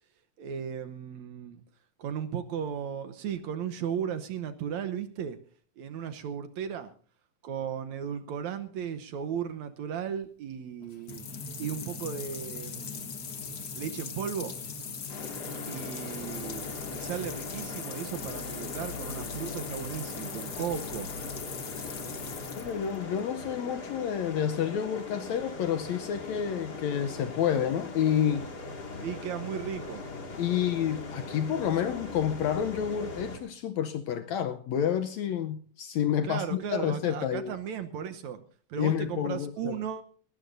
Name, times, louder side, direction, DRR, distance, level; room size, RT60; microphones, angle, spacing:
voice 1, 0.4-1.6 2.0-5.4 5.8-6.9 7.4-11.3 11.6-13.2 13.7-14.5 15.7-21.1 29.0-30.0 36.2-38.4 38.7-40.0, right 8 dB, 70° right, 2.0 m, -36 dB
sound 1, 10.8-23.2, left 5 dB, 45° left, 1.3 m, -40 dB
sound 2, 15.1-33.4, left 3 dB, 30° left, 2.6 m, -40 dB
voice 2, 22.6-28.5 30.4-37.5 38.8-39.8, left 9 dB, 70° left, 1.8 m, -29 dB
19.5 x 18.5 x 2.7 m
omnidirectional pair, 3.9 m